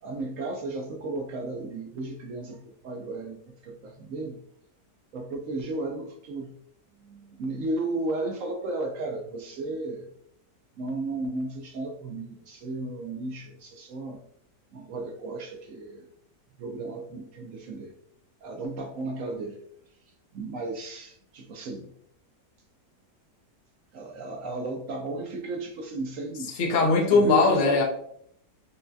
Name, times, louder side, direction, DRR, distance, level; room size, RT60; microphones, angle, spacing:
voice 1, 0.0-4.4 5.1-6.5 7.0-10.1 10.8-14.2 14.7-16.0 16.6-17.9 18.4-19.6 20.3-21.9 23.9-26.5 27.1-27.8, right 2 dB, 70° right, 2 dB, 0.8 m, -34 dB
voice 2, 26.6-27.8, left 3 dB, 45° left, -1 dB, 0.6 m, -20 dB
5.4 x 2.2 x 2.6 m, 0.70 s
omnidirectional pair, 1.9 m